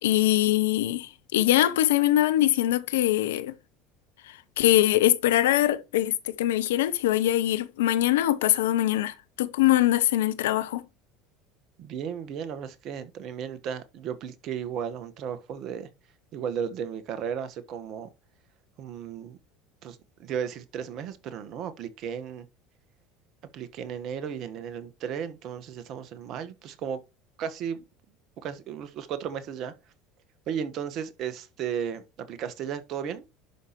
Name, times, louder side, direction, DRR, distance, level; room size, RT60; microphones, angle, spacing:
voice 1, 0.0-3.5 4.3-10.8, left 14 dB, 80° left, 0.8 m, -23 dB
voice 2, 11.8-15.9 16.3-18.1 18.8-19.4 19.8-22.4 23.5-27.0 27.4-27.8 28.4-29.7 30.5-33.2, right 8 dB, 55° right, 1.5 m, -34 dB
11.0 x 5.7 x 3.1 m
hypercardioid pair, 80°, 0 cm